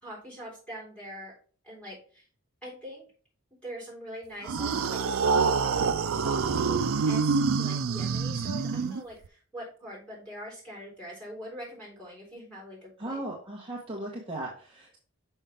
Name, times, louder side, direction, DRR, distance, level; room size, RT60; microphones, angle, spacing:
voice 1, 0.0-1.3 1.6-2.3 2.6-3.0 3.5-5.0 6.2-6.8 7.1-13.2, equal, 5° left, -4 dB, 3.9 m, -43 dB
sound 1, 4.4-9.3, right 5 dB, 75° right, 0.4 m, -26 dB
voice 2, 13.0-15.0, right 1 dB, 25° right, -3 dB, 1.2 m, -37 dB
6.3 x 5.7 x 3.4 m, 0.42 s
head